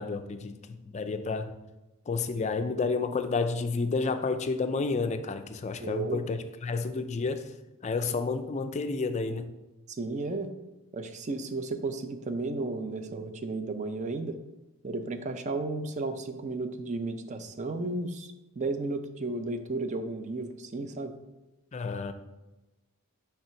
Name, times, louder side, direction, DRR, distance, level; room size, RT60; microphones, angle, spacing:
voice 1, 0.0-1.5 2.1-7.5 7.8-9.5 21.7-22.1, left 4 dB, 30° left, 0.4 m, -30 dB
voice 2, 5.8-6.2 10.0-10.5 10.9-14.4 14.8-21.1, right 3 dB, 30° right, 0.4 m, -33 dB
5.8 x 3.4 x 5.6 m
head